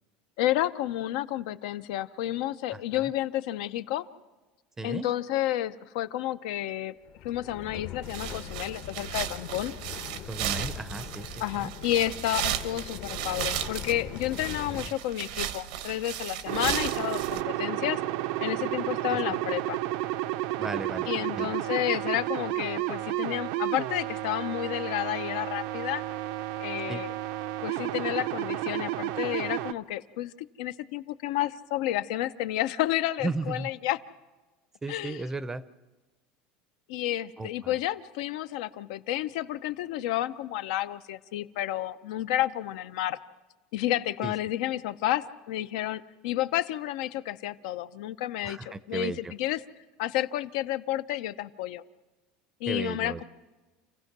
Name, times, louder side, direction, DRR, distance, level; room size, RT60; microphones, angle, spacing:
voice 1, 0.4-4.1 4.8-6.9 7.2-9.7 11.4-18.0 18.4-19.8 21.1-26.0 26.6-27.1 27.6-30.3 30.6-34.0 34.9-35.3 36.9-43.2 43.7-49.6 50.0-51.8 52.6-53.2, left 13 dB, 75° left, 12 dB, 0.7 m, -31 dB
voice 2, 2.7-3.1 4.8-5.1 10.3-11.3 11.5-11.7 14.7-14.8 16.7-16.8 19.1-19.2 20.6-21.5 26.9-27.0 33.2-33.7 34.8-35.6 37.4-37.8 44.2-44.3 48.4-49.3 52.7-53.2, right 3 dB, 10° right, 15 dB, 0.6 m, -35 dB
sound 1, 7.1-14.9, left 9 dB, 50° left, 1.0 m, -41 dB
sound 2, 8.0-17.4, right 11 dB, 85° right, 1.2 m, -35 dB
sound 3, 16.5-29.7, right 16 dB, 70° right, 0.6 m, -32 dB
28.5 x 15.5 x 6.1 m, 1.2 s
supercardioid pair, 150°, 4 cm